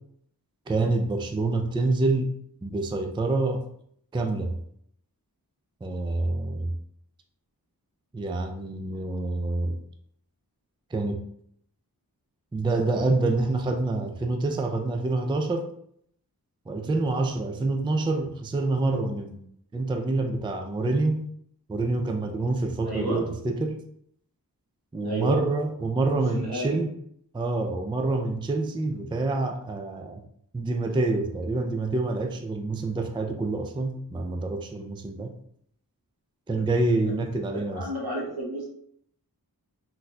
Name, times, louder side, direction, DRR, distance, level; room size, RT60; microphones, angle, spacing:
voice 1, 0.7-2.3 2.6-3.6 4.1-4.6 5.8-6.7 8.1-9.8 10.9-11.2 12.5-15.7 16.7-19.4 19.7-21.3 21.7-23.8 24.9-26.9 27.3-30.2 30.5-35.3 36.5-37.9, right 2 dB, 15° right, 5 dB, 0.3 m, -27 dB
voice 2, 22.8-23.2 25.0-25.4 26.3-26.8 37.7-38.7, equal, 75° right, -2 dB, 1.1 m, -31 dB
3.9 x 2.7 x 2.3 m, 0.68 s
wide cardioid pair, 40°, 38 cm